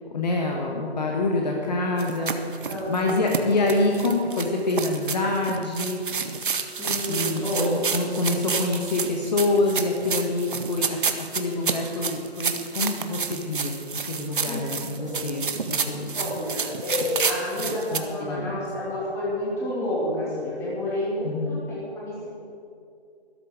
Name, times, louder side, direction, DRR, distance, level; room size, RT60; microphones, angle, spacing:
voice 1, 0.1-2.6 2.9-6.0 7.1-16.2 17.6-18.6 21.2-21.6, left 2 dB, 40° left, 0 dB, 1.5 m, -26 dB
sound 1, 2.0-18.0, right 5 dB, 50° right, 1.0 m, -30 dB
voice 2, 2.7-3.5 6.8-7.8 14.4-14.6 15.0-15.2 16.1-22.3, left 1 dB, 10° left, -7 dB, 2.7 m, -30 dB
12.5 x 12.0 x 6.4 m, 2.5 s
figure-of-eight pair, 155°, 33 cm